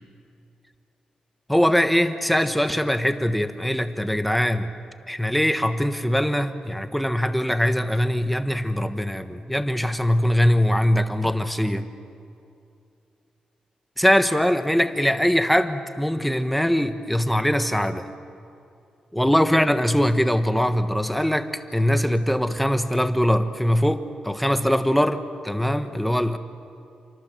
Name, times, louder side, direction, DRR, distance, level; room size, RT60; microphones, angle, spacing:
voice 1, 1.5-4.7 5.1-11.9 14.0-18.1 19.1-26.4, equal, ahead, 8 dB, 1.2 m, -22 dB
28.0 x 25.5 x 7.6 m, 2.6 s
wide cardioid pair, 145°, 2 cm